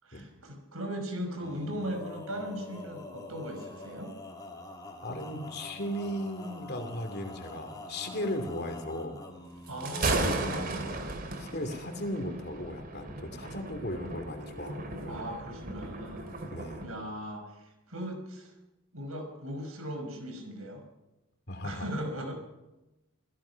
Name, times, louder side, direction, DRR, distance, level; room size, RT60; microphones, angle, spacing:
voice 1, 0.0-4.1 9.7-10.2 15.1-16.3 16.8-18.5 18.9-20.8 21.6-22.3, equal, 75° right, 5 dB, 5.5 m, -38 dB
Male singing, 1.4-11.2, left 2 dB, 20° left, 3.5 m, -45 dB
voice 2, 5.0-9.2 10.1-11.0 11.4-15.3 16.5-16.9 21.5-21.9, left 1 dB, 45° left, 7 dB, 2.7 m, -36 dB
Thunder, 9.7-16.9, right 2 dB, 40° right, 2.6 m, -35 dB
28.0 x 16.5 x 5.8 m, 1.0 s
head